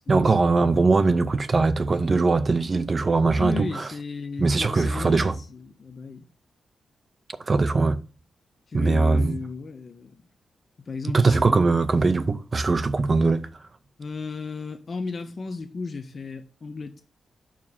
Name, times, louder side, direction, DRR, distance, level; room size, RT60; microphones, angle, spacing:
voice 1, 0.1-3.9 4.4-5.4 7.4-8.0 8.7-9.4 11.1-13.5, right 3 dB, 30° right, 0.5 m, -21 dB
voice 2, 3.3-6.2 8.7-10.2 10.9-11.6 14.0-17.0, left 4 dB, 40° left, 0.7 m, -34 dB
6.0 x 4.9 x 5.5 m
wide cardioid pair, 125°, 0 cm